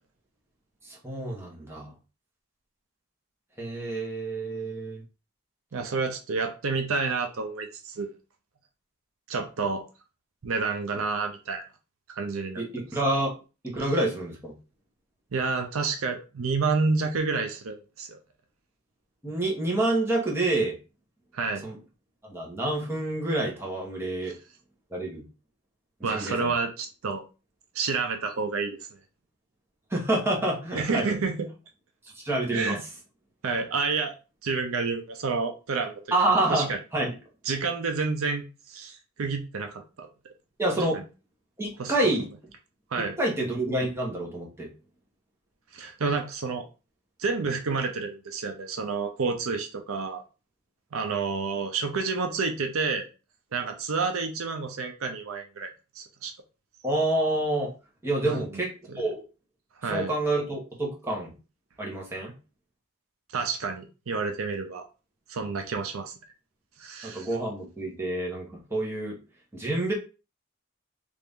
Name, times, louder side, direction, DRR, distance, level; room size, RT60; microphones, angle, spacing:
voice 1, 1.0-1.9 3.6-5.0 12.6-13.3 13.6-14.5 19.2-20.7 21.6-21.8 22.2-24.3 24.9-25.2 26.0-26.5 29.9-31.0 32.2-32.8 36.1-37.1 40.6-41.0 41.6-42.3 43.2-44.7 56.8-57.7 58.0-58.7 58.9-59.2 59.9-61.3 61.8-62.3 67.0-69.2 69.5-69.9, right 2 dB, 10° right, -3 dB, 1.0 m, -28 dB
voice 2, 5.7-8.1 9.3-9.8 10.4-11.6 12.1-12.6 15.3-18.2 21.3-21.6 24.3-24.4 26.0-27.2 27.7-28.8 30.7-31.5 32.5-32.8 33.4-34.1 34.4-36.0 36.5-36.8 37.5-40.1 40.9-41.0 41.8-41.9 42.9-43.2 45.7-46.7 47.2-50.2 50.9-53.1 53.5-55.7 56.0-56.3 58.2-59.0 59.8-60.1 63.3-64.9 65.3-66.1 66.8-67.3, right 4 dB, 80° right, 5 dB, 0.6 m, -29 dB
3.4 x 2.6 x 3.5 m, 0.32 s
head